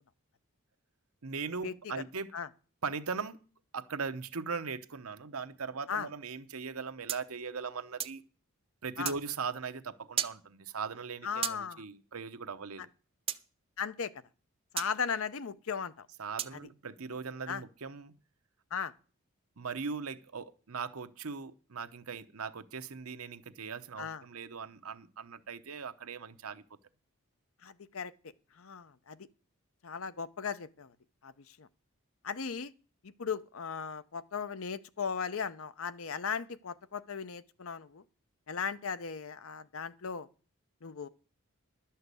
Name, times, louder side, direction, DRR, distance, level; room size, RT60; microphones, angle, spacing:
voice 1, 1.2-2.3 2.8-3.4 3.7-8.2 8.8-12.9 16.2-18.1 19.6-26.6, right 5 dB, 80° right, 0.9 m, -39 dB
sound 1, 7.1-8.2 9.1-9.2 10.2-10.4 11.4-11.6 13.3-13.4 14.8-14.9 16.4-16.6, right 10 dB, 25° right, 0.5 m, -34 dB
voice 2, 11.2-11.8 13.8-14.1 14.7-16.1 17.5-17.6 18.7-18.9 24.0-24.2 27.6-28.1 28.5-29.2 29.8-30.9 31.2-31.7 32.2-32.7 33.0-38.0 38.5-40.3 40.8-41.1, left 6 dB, 70° left, 0.7 m, -37 dB
12.0 x 5.7 x 8.2 m
head